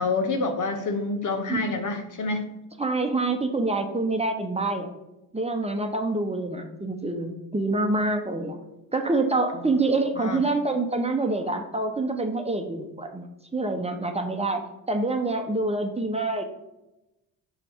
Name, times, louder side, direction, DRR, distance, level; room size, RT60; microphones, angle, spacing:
voice 1, 0.0-2.5 10.2-10.4, left 3 dB, 45° left, 6 dB, 0.9 m, -27 dB
voice 2, 2.8-4.9 5.3-8.6 8.9-13.3 13.5-14.6 14.9-16.5, right 2 dB, 15° right, 4 dB, 0.9 m, -26 dB
5.1 x 4.8 x 4.5 m, 0.95 s
supercardioid pair, 55°, 41 cm